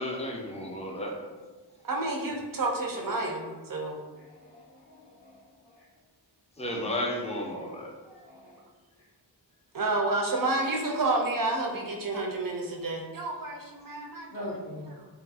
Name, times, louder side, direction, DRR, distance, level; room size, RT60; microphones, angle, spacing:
voice 1, 0.0-1.1 6.6-7.9, left 1 dB, 15° left, -1 dB, 0.5 m, -33 dB
voice 2, 1.0-1.4 1.9-2.1 2.5-2.6 3.1-3.7 4.1-5.9 7.4-8.7 11.0-11.1 14.3-15.1, left 1 dB, 75° left, -4 dB, 0.8 m, -45 dB
voice 3, 1.8-4.0 9.7-14.3, right 2 dB, 50° right, 1 dB, 0.5 m, -30 dB
2.7 x 2.7 x 2.3 m, 1.3 s
wide cardioid pair, 60°, 43 cm